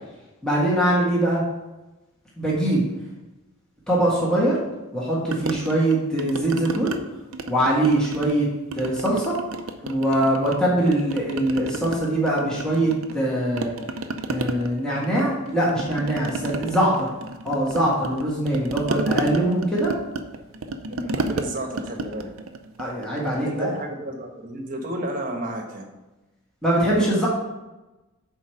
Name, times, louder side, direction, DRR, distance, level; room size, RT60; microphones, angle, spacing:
voice 1, 0.4-1.4 2.4-2.8 3.9-4.6 4.9-6.9 7.5-8.5 8.7-9.4 9.8-13.7 14.3-17.1 17.4-19.9 22.8-23.8 26.6-27.3, right 1 dB, 5° left, -7 dB, 1.5 m, -22 dB
sound 1, 5.3-7.0 7.3-8.4 8.7-10.6 10.9-13.3 13.6-23.4, right 2 dB, 65° right, 0.6 m, -32 dB
voice 2, 20.9-22.3 23.5-25.8, right 1 dB, 40° right, 2 dB, 1.2 m, -32 dB
6.5 x 4.5 x 6.3 m, 1.1 s
head